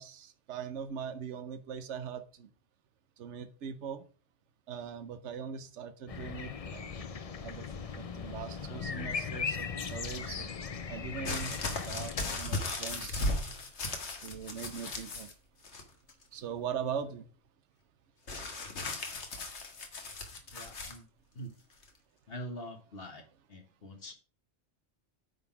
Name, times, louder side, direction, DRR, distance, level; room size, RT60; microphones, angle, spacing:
voice 1, 0.0-2.5 3.2-4.0 4.7-6.8 7.4-10.5 10.9-11.5 11.8-13.3 14.2-15.3 16.3-17.3, right 7 dB, 80° right, 10 dB, 1.1 m, -41 dB
sound 1, 6.1-12.4, left 5 dB, 40° left, 0.6 m, -38 dB
sound 2, 11.2-15.3 15.6-16.2 18.3-21.0 21.8-21.9, left 2 dB, 75° left, 1.7 m, -36 dB
voice 2, 20.5-21.0 21.3-21.5 22.3-23.2 23.5-24.1, equal, 55° left, 5 dB, 1.6 m, -44 dB
9.3 x 3.9 x 5.9 m, 0.38 s
omnidirectional pair, 1.2 m